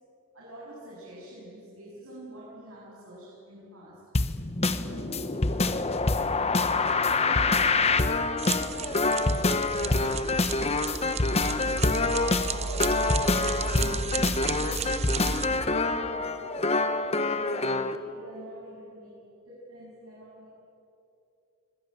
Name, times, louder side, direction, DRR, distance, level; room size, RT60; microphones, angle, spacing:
voice 1, 0.3-4.1 4.8-16.8 17.1-19.2 19.5-20.5, equal, 80° right, -6 dB, 8.0 m, -45 dB
sound 1, 4.1-18.0, left 3 dB, 30° left, 1.0 m, -26 dB
sound 2, 8.4-15.5, right 6 dB, 30° right, 0.6 m, -34 dB
25.5 x 21.0 x 9.1 m, 2.8 s
head